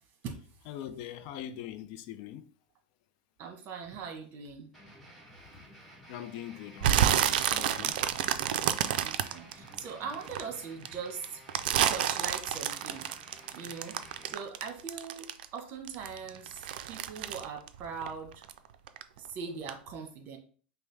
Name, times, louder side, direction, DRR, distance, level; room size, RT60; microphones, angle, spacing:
voice 1, 0.7-2.5 6.1-8.0, left 11 dB, 55° left, 0.4 m, -42 dB
voice 2, 3.4-4.7 9.0-11.4 11.9-13.1 13.5-13.9 14.3-15.3 15.5-16.6 16.9-18.3 19.2-20.4, right 6 dB, 40° right, 1.2 m, -40 dB
sound 1, 4.7-14.3, right 1 dB, 5° left, 1.8 m, -53 dB
sound 2, 6.8-10.4 10.8-15.6 15.9-18.6 18.9-19.3 19.7-19.8, right 10 dB, 70° right, 0.4 m, -29 dB
5.3 x 2.1 x 3.3 m
hypercardioid pair, 110°, 5 cm